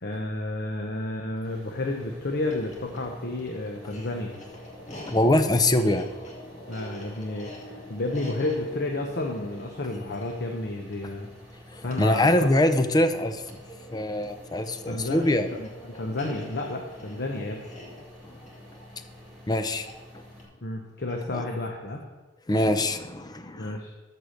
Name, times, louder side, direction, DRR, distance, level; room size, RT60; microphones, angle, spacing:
voice 1, 0.0-4.3 6.7-11.3 11.8-12.3 14.9-17.6 20.6-22.0 23.6-23.9, left 2 dB, 55° left, 2 dB, 1.0 m, -31 dB
sound 1, 1.4-20.4, left 1 dB, 5° left, 3.2 m, -49 dB
sound 2, 2.4-21.6, left 1 dB, 40° left, 2.1 m, -46 dB
voice 2, 4.9-6.1 11.7-13.4 13.9-15.5 18.3-18.4 19.5-19.9 21.3-21.4 22.5-23.8, left 1 dB, 20° left, 9 dB, 0.6 m, -23 dB
13.5 x 4.8 x 6.5 m, 1.2 s
head